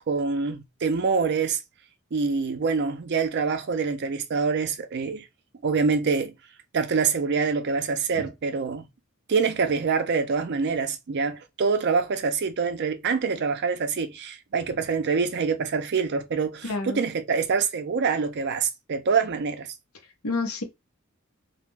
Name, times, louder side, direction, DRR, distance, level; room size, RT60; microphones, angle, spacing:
voice 1, 0.0-1.6 2.1-5.2 5.6-6.3 6.7-8.8 9.3-19.7, right 5 dB, 55° right, 0.5 m, -25 dB
voice 2, 16.6-17.0 20.2-20.6, left 3 dB, 85° left, 0.8 m, -29 dB
2.3 x 2.1 x 3.2 m
head